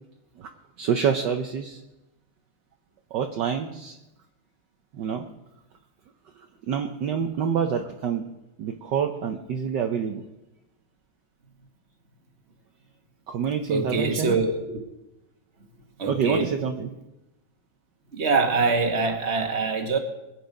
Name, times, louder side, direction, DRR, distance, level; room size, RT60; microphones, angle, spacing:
voice 1, 0.8-1.8 3.1-4.0 4.9-5.3 6.7-8.3 8.6-10.2 13.3-14.4 16.1-16.9, right 7 dB, 65° right, 5 dB, 1.4 m, -27 dB
voice 2, 13.7-14.8 16.0-16.5 18.1-20.0, right 4 dB, 35° right, 4 dB, 1.8 m, -24 dB
22.5 x 8.8 x 5.3 m, 0.96 s
omnidirectional pair, 2.3 m